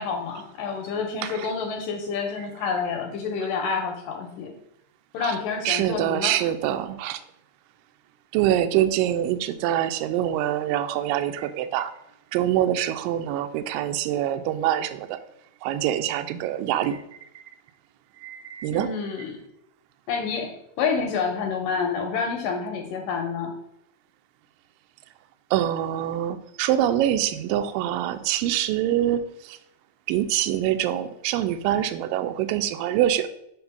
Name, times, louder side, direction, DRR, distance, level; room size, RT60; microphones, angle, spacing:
voice 1, 0.0-4.5 5.1-6.4 18.7-19.4 20.1-23.5, left 5 dB, 75° left, 3 dB, 2.0 m, -28 dB
voice 2, 5.7-7.2 8.3-11.9 12.3-15.2 15.6-17.0 18.2-18.9 25.5-29.6 30.1-33.3, right 12 dB, 80° right, 9 dB, 2.0 m, -25 dB
5.4 x 4.1 x 5.8 m, 0.78 s
omnidirectional pair, 4.4 m